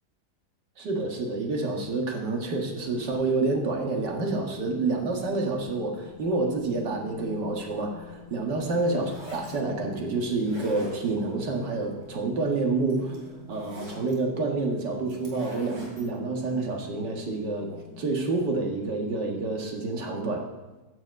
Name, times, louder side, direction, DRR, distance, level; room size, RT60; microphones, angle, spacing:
voice 1, 0.8-13.2 13.5-20.5, right 3 dB, 90° right, 1 dB, 2.2 m, -28 dB
sound 1, 2.4-18.8, left 4 dB, 70° right, 3.8 m, -46 dB
sound 2, 8.8-9.5 10.3-11.3 12.5-12.6 12.9-14.1 15.1-16.1, right 1 dB, 45° right, 3.2 m, -44 dB
15.0 x 6.1 x 5.2 m, 1.1 s
omnidirectional pair, 1.8 m